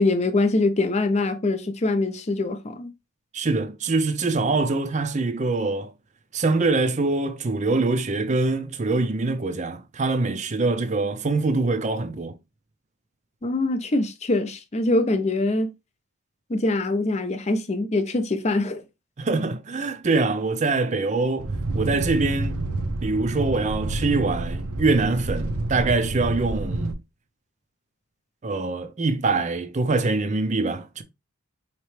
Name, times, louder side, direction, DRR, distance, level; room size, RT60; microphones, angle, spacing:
voice 1, 0.0-2.9 13.4-15.7 16.5-18.8, left 2 dB, 30° left, 0.5 m, -23 dB
voice 2, 3.3-5.9 6.3-12.4 19.2-22.6 23.0-27.0 28.4-31.0, right 3 dB, 35° right, 0.5 m, -24 dB
sound 1, 21.4-26.9, right 2 dB, 90° right, 0.6 m, -28 dB
4.3 x 2.9 x 3.2 m
head